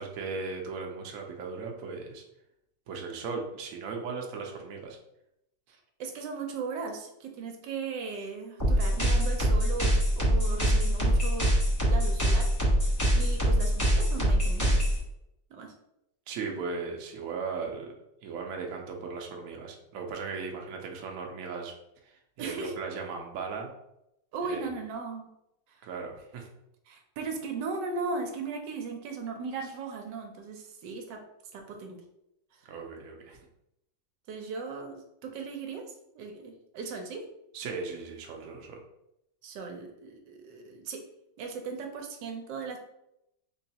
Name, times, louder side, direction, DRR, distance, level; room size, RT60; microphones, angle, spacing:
voice 1, 0.0-2.2 2.9-5.0 13.2-13.3 16.3-17.9 18.2-21.7 22.4-23.7 24.5-24.7 25.8-26.5 32.6-33.4 37.5-38.8, right 4 dB, 65° right, 1 dB, 0.9 m, -37 dB
voice 2, 5.7-12.5 13.1-14.9 15.5-15.7 22.4-22.7 24.3-25.3 25.7-25.8 26.9-31.2 31.5-32.0 32.5-32.6 34.3-37.3 39.4-41.0 41.4-42.8, right 4 dB, 80° right, 3 dB, 1.2 m, -37 dB
sound 1, 8.6-15.0, equal, 20° left, 0.5 m, -24 dB
3.8 x 3.1 x 2.8 m, 0.83 s
omnidirectional pair, 1.9 m